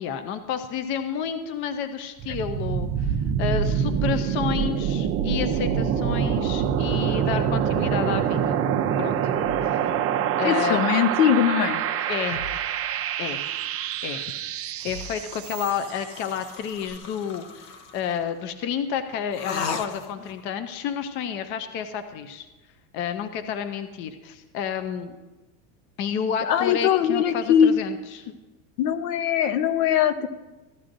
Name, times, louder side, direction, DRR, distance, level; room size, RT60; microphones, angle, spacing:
voice 1, 0.0-8.6 9.0-9.2 10.4-10.8 12.1-12.4 13.2-13.4 14.0-14.3 14.8-22.5 22.9-25.2 26.0-28.3, left 8 dB, 25° left, 9 dB, 0.3 m, -30 dB
sound 1, 2.2-16.0, right 8 dB, 30° right, 0.5 m, -25 dB
sound 2, 9.4-9.7 12.3-12.7 14.8-15.2, equal, 85° left, 3.3 m, -40 dB
voice 2, 10.4-11.8 26.4-27.8 28.8-30.3, left 9 dB, 70° left, 10 dB, 1.0 m, -21 dB
sound 3, 14.8-18.2 19.3-20.4, left 5 dB, 45° left, 0.9 m, -37 dB
15.0 x 11.0 x 2.6 m, 1.1 s
supercardioid pair, 145°, 49 cm